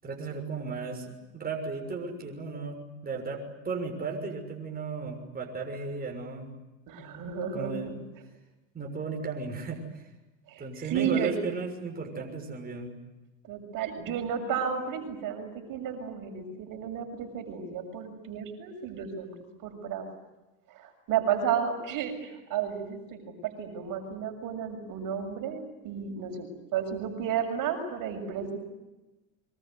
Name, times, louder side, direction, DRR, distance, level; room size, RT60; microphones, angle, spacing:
voice 1, 0.0-6.5 7.5-8.0 8.7-10.1 10.6-12.9, right 4 dB, 20° right, 2 dB, 6.5 m, -35 dB
voice 2, 6.9-8.0 10.5-11.4 13.4-20.1 20.7-28.6, right 8 dB, 50° right, 6 dB, 6.9 m, -33 dB
24.5 x 24.5 x 9.5 m, 1.0 s
supercardioid pair, 115°, 42 cm